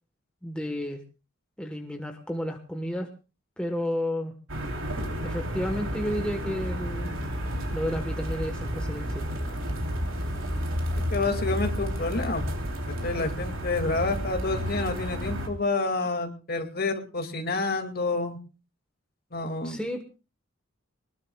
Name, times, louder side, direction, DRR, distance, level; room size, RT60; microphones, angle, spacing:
voice 1, 0.4-1.0 1.6-3.1 3.6-4.3 5.2-7.1 7.7-9.2 19.6-20.0, equal, 5° left, 3 dB, 1.2 m, -32 dB
sound 1, 4.5-15.5, equal, 70° right, 3.1 m, -31 dB
voice 2, 11.1-12.5 12.9-18.4 19.3-19.8, left 3 dB, 45° left, 5 dB, 2.2 m, -29 dB
22.0 x 20.0 x 2.3 m, 0.32 s
head